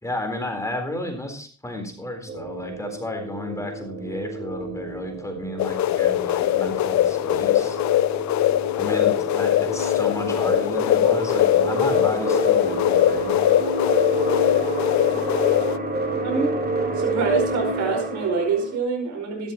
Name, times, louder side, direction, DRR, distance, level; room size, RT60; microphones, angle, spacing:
voice 1, 0.0-7.8 8.7-13.5, left 1 dB, 10° left, 3 dB, 3.9 m, -32 dB
sound 1, 2.3-18.8, right 2 dB, 35° right, 3.3 m, -30 dB
sound 2, 5.6-15.8, left 13 dB, 70° left, 0.6 m, -21 dB
voice 2, 16.2-16.5 16.9-19.5, right 4 dB, 70° right, 2 dB, 5.1 m, -25 dB
13.5 x 12.5 x 3.0 m, 0.43 s
cardioid pair, 90°, 30 cm